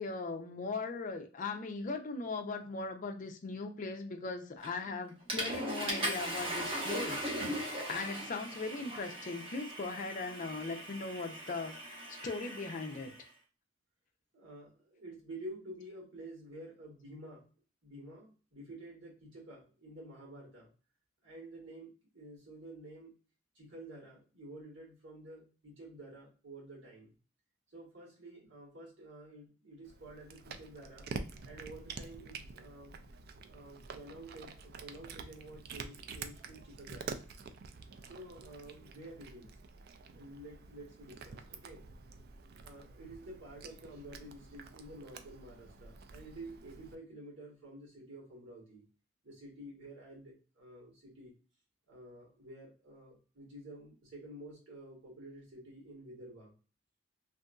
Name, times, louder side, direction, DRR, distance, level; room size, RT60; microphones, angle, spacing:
voice 1, 0.0-13.1, left 3 dB, 40° left, 0.4 m, -39 dB
Water / Toilet flush, 4.6-4.9 5.3-13.2, right 1 dB, 30° right, 0.9 m, -39 dB
voice 2, 14.3-17.5 17.8-20.7 21.2-23.1 23.5-27.2 27.7-31.1 31.4-33.0 33.5-37.2 38.0-39.5 40.1-41.9 42.6-48.8 49.2-51.3 51.9-56.5, right 1 dB, 75° right, 1.5 m, -50 dB
Cat, 29.8-47.0, right 4 dB, 50° right, 0.3 m, -48 dB
2.8 x 2.6 x 2.2 m
head